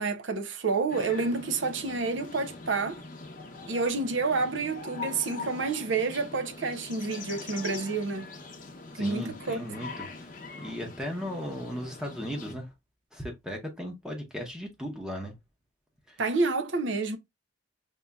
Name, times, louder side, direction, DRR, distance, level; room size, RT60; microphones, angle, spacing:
voice 1, 0.0-3.0 3.7-8.3 9.0-9.6 16.2-17.2, right 3 dB, 75° right, 0.7 m, -29 dB
sound 1, 0.9-12.5, left 3 dB, 45° left, 0.7 m, -43 dB
voice 2, 8.9-12.7 13.1-15.3 16.1-16.2, equal, 5° right, 0.8 m, -37 dB
5.3 x 2.7 x 2.3 m
head